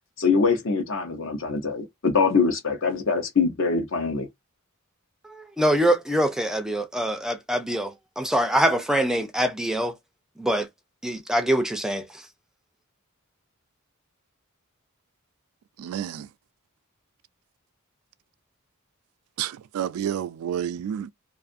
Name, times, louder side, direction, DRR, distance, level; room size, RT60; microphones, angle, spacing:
voice 1, 0.2-4.3, left 4 dB, 60° left, 0.8 m, -23 dB
voice 2, 5.6-7.9 8.2-9.9 10.4-10.7 11.0-12.0, right 1 dB, 5° right, 0.4 m, -23 dB
voice 3, 15.8-16.2 19.4-21.1, right 10 dB, 80° right, 0.3 m, -30 dB
2.5 x 2.4 x 2.5 m
head